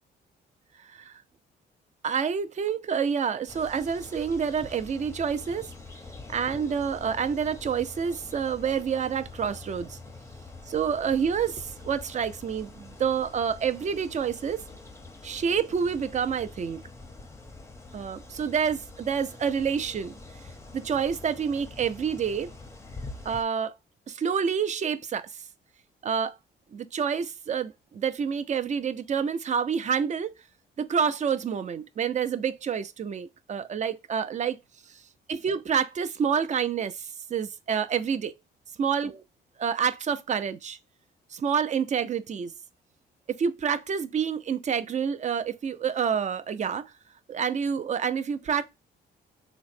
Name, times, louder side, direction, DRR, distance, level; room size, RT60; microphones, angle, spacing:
voice 1, 0.8-1.2 2.0-5.7 6.3-10.0 10.7-14.6 15.2-16.8 17.9-20.2 20.7-22.5 23.3-23.7 24.1-25.4 26.0-26.4 26.7-30.3 30.8-34.6 35.3-38.3 38.8-39.2 39.6-40.8 41.3-42.5 43.3-46.9 47.3-48.6, right 7 dB, 35° right, 0.4 m, -28 dB
sound 1, 3.5-23.4, left 3 dB, 15° left, 0.6 m, -45 dB
3.0 x 2.0 x 4.1 m
cardioid pair, 90°, 20 cm